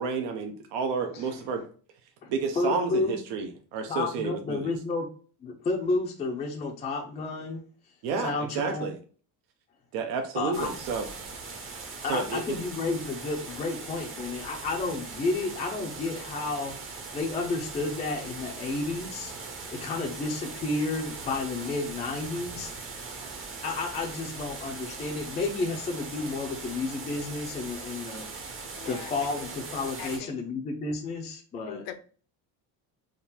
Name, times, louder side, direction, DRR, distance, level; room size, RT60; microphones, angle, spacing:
voice 1, 0.0-1.7 2.3-4.8 8.0-9.0 9.9-11.1 12.0-12.6, right 5 dB, 75° right, 0.7 m, -31 dB
voice 2, 2.2-3.2 3.9-5.1 5.4-7.6 8.2-8.9 10.4-10.7 12.0-16.7 17.1-19.3 19.8-22.7 23.6-28.2 28.9-31.8, left 3 dB, 15° left, 0.4 m, -31 dB
sound 1, 10.5-30.2, right 4 dB, 30° right, 0.7 m, -40 dB
voice 3, 28.8-29.1 29.4-29.5 30.0-30.3 31.7-32.0, left 10 dB, 80° left, 0.7 m, -41 dB
3.7 x 2.4 x 4.2 m
cardioid pair, 170°, 42 cm